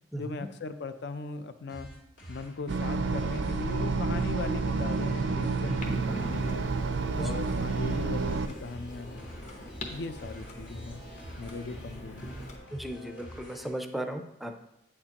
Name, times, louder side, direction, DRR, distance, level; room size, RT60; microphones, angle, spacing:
voice 1, 0.2-1.9 2.3-6.7 7.2-9.2 9.9-11.0 11.4-12.3, left 3 dB, 65° left, 10 dB, 0.5 m, -38 dB
sound 1, 1.7-13.7, right 1 dB, 85° left, 2.4 m, -47 dB
sound 2, 2.7-8.5, right 4 dB, 80° right, 0.5 m, -29 dB
Clock, 5.8-12.6, left 1 dB, 40° left, 0.9 m, -44 dB
voice 2, 12.7-14.6, right 1 dB, ahead, 6 dB, 0.4 m, -36 dB
8.3 x 6.6 x 2.9 m, 0.83 s
head